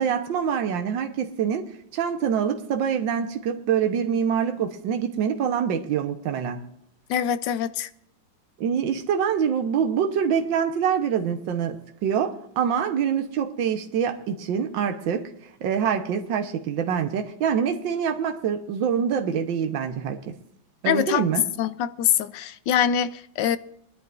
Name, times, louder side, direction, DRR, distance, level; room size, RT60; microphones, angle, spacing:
voice 1, 0.0-6.7 8.6-15.3 15.6-20.4 20.8-21.5, right 7 dB, 70° right, 1.8 m, -25 dB
voice 2, 7.1-7.9 20.8-21.2 21.6-23.6, left 9 dB, 70° left, 1.2 m, -24 dB
23.0 x 11.0 x 2.6 m
omnidirectional pair, 2.2 m